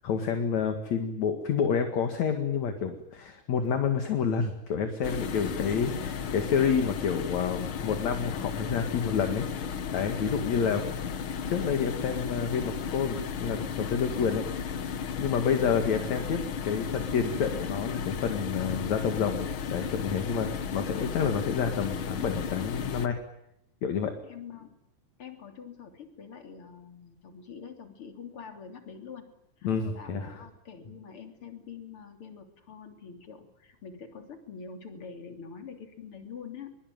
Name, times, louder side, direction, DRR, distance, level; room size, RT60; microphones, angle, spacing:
voice 1, 0.0-9.5 9.9-10.8 11.5-14.4 15.2-23.2 23.8-24.1 29.6-30.3, left 6 dB, 55° left, 6 dB, 2.9 m, -29 dB
sound 1, 5.0-23.1, left 7 dB, 80° left, 1.1 m, -34 dB
voice 2, 5.3-6.0 10.2-11.0 14.1-14.7 15.3-15.5 24.2-24.8 25.2-29.3 29.6-36.7, left 6 dB, 35° left, 5 dB, 3.8 m, -45 dB
24.0 x 23.0 x 9.4 m, 0.79 s
omnidirectional pair, 4.4 m